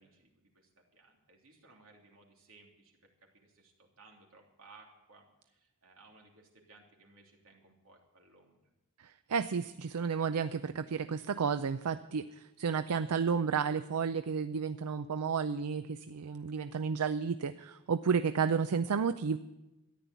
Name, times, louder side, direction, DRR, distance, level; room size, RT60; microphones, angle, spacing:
voice 1, 0.0-8.6, right 3 dB, 70° right, 0 dB, 3.2 m, -61 dB
voice 2, 9.0-19.4, right 6 dB, 90° right, 12 dB, 0.5 m, -32 dB
13.5 x 10.5 x 8.2 m, 0.97 s
head